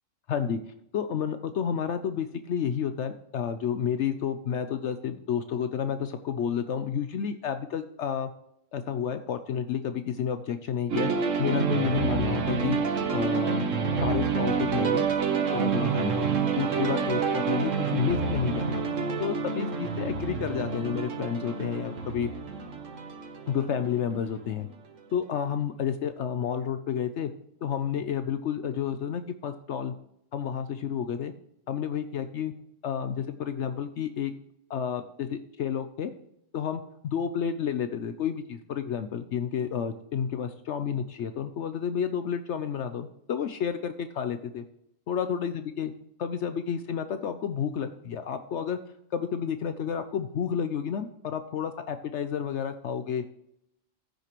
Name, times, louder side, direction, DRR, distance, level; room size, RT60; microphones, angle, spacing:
voice 1, 0.3-0.6 0.9-8.3 8.7-11.1 11.4-13.6 14.0-15.1 15.5-16.3 16.6-18.9 19.2-22.3 23.5-24.7 25.1-27.3 27.6-29.9 30.3-31.3 31.7-32.5 32.8-34.3 34.7-36.1 36.5-44.6 45.1-45.9 46.2-48.8 49.1-53.2, left 8 dB, 65° left, 9 dB, 0.9 m, -30 dB
sound 1, 10.9-24.6, right 5 dB, 75° right, 1.5 m, -28 dB
14.5 x 6.6 x 3.0 m, 0.77 s
omnidirectional pair, 1.3 m